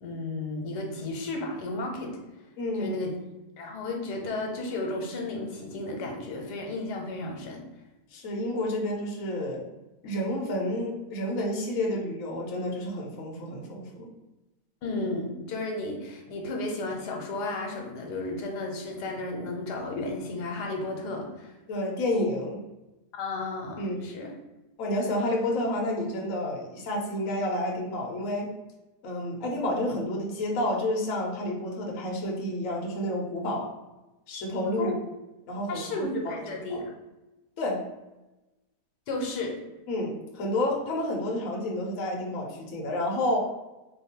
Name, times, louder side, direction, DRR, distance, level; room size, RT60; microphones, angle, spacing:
voice 1, 0.0-2.2 2.7-3.1 3.6-7.6 14.8-21.5 23.1-24.3 34.8-34.9 35.7-36.8 39.1-39.6, left 2 dB, 85° left, 1 dB, 1.3 m, -33 dB
voice 2, 2.6-3.0 8.1-9.6 10.0-14.1 21.7-22.6 23.8-24.1 24.8-28.5 29.0-33.7 34.3-35.0 35.5-36.9 37.6-37.8 39.9-43.4, left 1 dB, 65° left, -1 dB, 0.9 m, -30 dB
2.8 x 2.3 x 4.1 m, 1.0 s
omnidirectional pair, 1.7 m